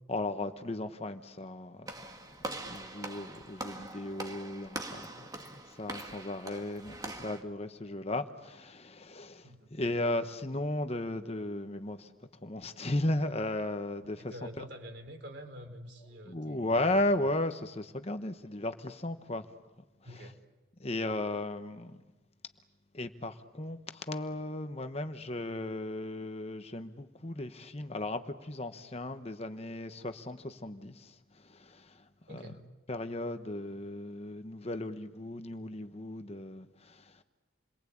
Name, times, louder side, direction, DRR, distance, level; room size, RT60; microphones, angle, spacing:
voice 1, 0.1-2.0 2.5-12.1 12.4-14.6 16.2-19.5 20.1-20.3 20.8-22.0 22.9-32.5 32.9-37.2, left 1 dB, 30° left, 1.0 m, -36 dB
Walk footsteps / Slam, 1.9-7.4, right 2 dB, 20° right, 1.9 m, -43 dB
voice 2, 14.3-17.0 20.0-20.3 32.3-32.6, equal, 55° right, 4.1 m, -47 dB
29.0 x 23.0 x 8.6 m
head